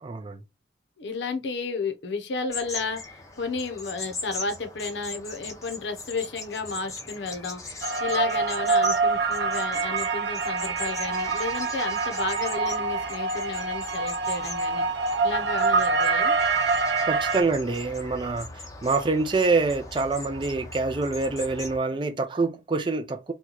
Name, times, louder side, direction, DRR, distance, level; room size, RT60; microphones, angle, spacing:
voice 1, 0.0-0.4 17.1-23.3, right 3 dB, 25° right, 0.4 m, -26 dB
voice 2, 1.0-3.0 3.4-7.6 8.0-14.8 15.2-16.4, left 4 dB, 80° left, 0.7 m, -32 dB
sound 1, 2.5-21.8, left 3 dB, 20° left, 0.6 m, -40 dB
sound 2, 7.8-17.4, right 4 dB, 75° right, 0.6 m, -25 dB
2.9 x 2.2 x 3.8 m
head